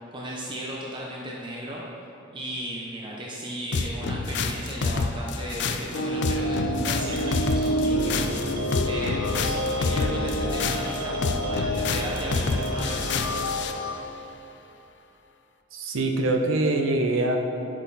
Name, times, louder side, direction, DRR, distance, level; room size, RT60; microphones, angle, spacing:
voice 1, 0.1-1.8 2.3-13.1, right 1 dB, 25° right, -4 dB, 0.8 m, -35 dB
sound 1, 3.7-13.8, left 4 dB, 55° left, 0.4 m, -28 dB
sound 2, 5.9-13.9, equal, 85° left, 1.0 m, -29 dB
sound 3, 7.1-13.4, right 2 dB, 50° right, 1.0 m, -36 dB
voice 2, 15.7-17.4, right 2 dB, 75° right, 3 dB, 0.7 m, -24 dB
10.5 x 6.1 x 4.1 m, 2.9 s
head